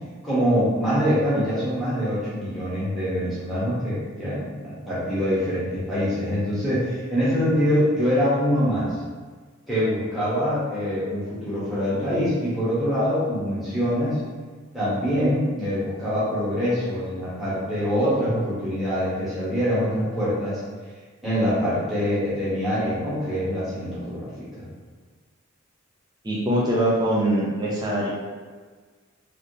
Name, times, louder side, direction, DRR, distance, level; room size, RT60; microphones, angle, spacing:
voice 1, 0.2-8.9 9.7-14.2 14.7-20.6 21.2-24.7, equal, ahead, -12 dB, 1.0 m, -24 dB
voice 2, 26.2-28.1, right 1 dB, 20° right, -5 dB, 0.4 m, -23 dB
3.3 x 2.7 x 2.7 m, 1.4 s
head